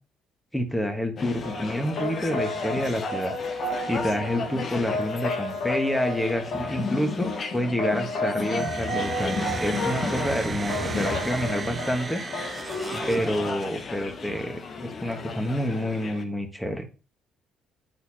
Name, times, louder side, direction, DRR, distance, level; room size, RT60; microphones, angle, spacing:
voice 1, 0.5-12.2 13.1-16.8, equal, 10° left, 5 dB, 1.4 m, -28 dB
sound 1, 1.2-16.2, left 5 dB, 50° left, 0.9 m, -35 dB
sound 2, 1.4-13.0, left 2 dB, 65° left, 1.7 m, -32 dB
sound 3, 8.4-14.0, right 4 dB, 35° right, 0.5 m, -34 dB
8.3 x 4.1 x 2.8 m, 0.34 s
supercardioid pair, 60°, 0 cm